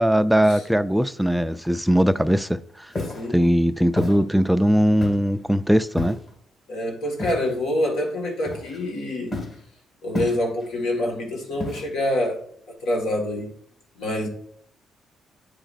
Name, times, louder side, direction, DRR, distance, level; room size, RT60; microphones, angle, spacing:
voice 1, 0.0-2.6 3.3-6.2, equal, ahead, 0.3 m, -20 dB
Walk footsteps, 2.9-3.3 4.0-4.2 5.0-5.4 6.0-6.3 7.2-7.5 8.4-8.9 9.3-9.6 10.1-10.7 11.6-12.1, left 2 dB, 45° left, 2.2 m, -31 dB
voice 2, 6.7-9.3 10.0-12.4 12.8-13.5 14.0-14.3, left 1 dB, 80° left, 1.7 m, -26 dB
8.8 x 4.9 x 2.5 m
cardioid pair, 90°, 0 cm